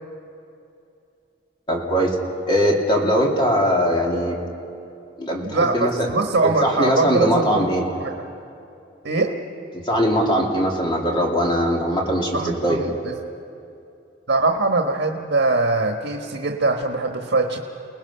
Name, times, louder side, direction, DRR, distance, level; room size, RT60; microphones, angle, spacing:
voice 1, 1.7-2.2 2.5-4.4 5.2-5.9 6.4-7.8 9.8-12.8, equal, 25° left, -1 dB, 2.8 m, -21 dB
voice 2, 5.4-7.7 8.0-8.3 9.0-9.4 12.3-13.2 14.3-17.6, right 3 dB, 85° right, 4 dB, 1.3 m, -22 dB
29.5 x 19.0 x 5.7 m, 2.7 s
head